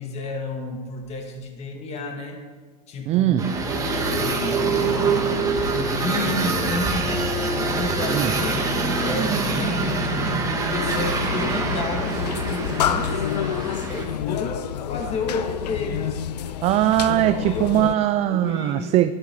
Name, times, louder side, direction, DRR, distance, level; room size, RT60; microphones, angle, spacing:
voice 1, 0.0-2.4 2.9-3.6 4.1-4.9 5.3-8.7 9.0-13.4 13.8-16.2 17.0-17.8 18.3-18.9, left 3 dB, 30° left, 2.2 m, -31 dB
voice 2, 3.1-3.5 8.1-8.3 16.6-19.1, right 13 dB, 30° right, 0.4 m, -20 dB
sound 1, 3.4-14.0, right 4 dB, 15° right, 1.9 m, -25 dB
sound 2, 3.5-13.1, left 3 dB, ahead, 1.5 m, -33 dB
sound 3, 10.9-18.0, left 10 dB, 85° left, 0.6 m, -29 dB
13.5 x 10.5 x 4.7 m
hypercardioid pair, 120°, 20 cm